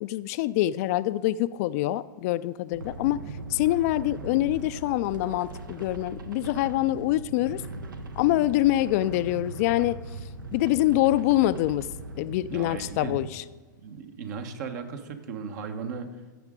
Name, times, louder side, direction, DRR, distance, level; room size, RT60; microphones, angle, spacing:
voice 1, 0.0-3.2 3.5-7.6 8.2-10.0 10.5-11.9 12.2-13.4, left 15 dB, 50° left, 15 dB, 0.4 m, -25 dB
sound 1, 2.7-13.3, right 2 dB, 85° right, 0.9 m, -39 dB
voice 2, 12.5-13.1 13.8-16.1, right 6 dB, 60° right, 7 dB, 1.2 m, -36 dB
15.5 x 6.3 x 3.7 m, 1.4 s
hypercardioid pair, 110°, 10 cm